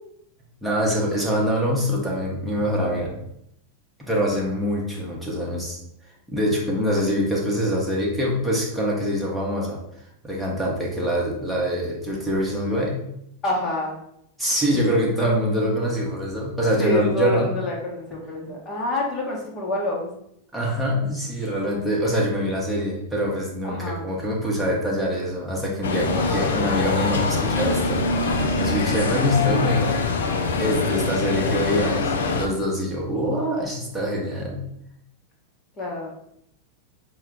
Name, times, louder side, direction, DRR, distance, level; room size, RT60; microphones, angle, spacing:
voice 1, 0.6-3.1 4.0-5.8 6.3-9.8 10.2-13.0 14.4-17.5 20.5-28.0 28.6-30.1 30.6-34.6, equal, 5° right, -4 dB, 1.0 m, -24 dB
voice 2, 13.4-14.0 16.8-20.1 23.6-24.1 26.1-26.7 35.8-36.1, left 2 dB, 30° left, -2 dB, 1.1 m, -27 dB
sound 1, 25.8-32.5, left 3 dB, 60° left, 0.5 m, -23 dB
5.5 x 2.3 x 3.6 m, 0.75 s
figure-of-eight pair, 90°, 0 cm